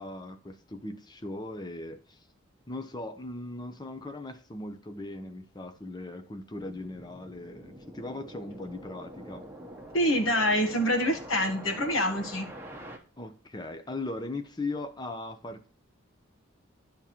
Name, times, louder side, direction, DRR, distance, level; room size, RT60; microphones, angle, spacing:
voice 1, 0.0-2.2 2.7-9.4 13.2-15.7, left 2 dB, 20° left, 0.7 m, -39 dB
sound 1, 6.6-13.0, right 1 dB, 10° right, 0.9 m, -45 dB
voice 2, 9.9-12.5, equal, 75° left, 1.5 m, -26 dB
10.5 x 3.7 x 4.3 m
head